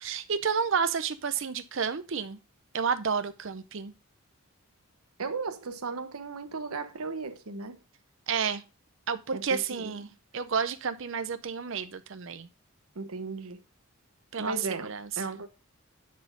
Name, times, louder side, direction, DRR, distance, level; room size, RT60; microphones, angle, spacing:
voice 1, 0.0-2.4 2.7-3.9 8.3-8.6 9.1-10.1 10.3-12.5 14.3-14.6 14.8-15.1, right 6 dB, 60° right, 0.6 m, -30 dB
voice 2, 5.2-7.8 9.3-10.0 12.9-13.6 14.4-15.5, right 4 dB, 80° right, 1.1 m, -36 dB
9.6 x 4.3 x 5.3 m
head